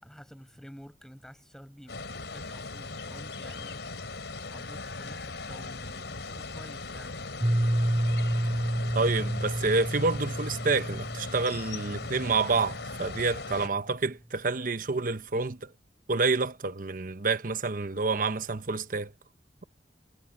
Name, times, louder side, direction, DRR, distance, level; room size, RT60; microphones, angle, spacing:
voice 1, 0.0-3.9 4.5-7.2, equal, 5° left, 5.4 m, -50 dB
sound 1, 1.9-13.7, left 3 dB, 90° left, 3.8 m, -39 dB
Piano, 7.4-13.0, right 1 dB, 10° right, 1.0 m, -30 dB
voice 2, 8.9-15.7 16.1-19.1, right 3 dB, 50° right, 0.9 m, -28 dB
head